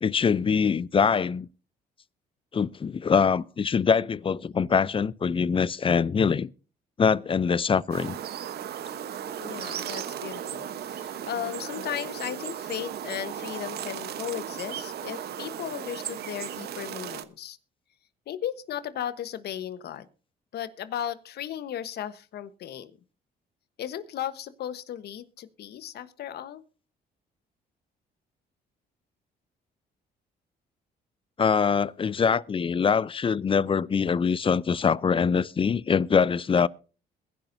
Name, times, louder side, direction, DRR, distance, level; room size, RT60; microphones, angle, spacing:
voice 1, 0.0-1.5 2.5-6.5 7.0-8.2 31.4-36.7, left 6 dB, 30° left, 0.6 m, -23 dB
sound 1, 7.9-17.2, right 10 dB, 65° right, 1.1 m, -36 dB
voice 2, 9.4-17.6 18.3-20.1 20.5-22.9 23.8-26.6, left 10 dB, 70° left, 1.2 m, -36 dB
22.0 x 10.5 x 2.7 m
cardioid pair, 85°, 18 cm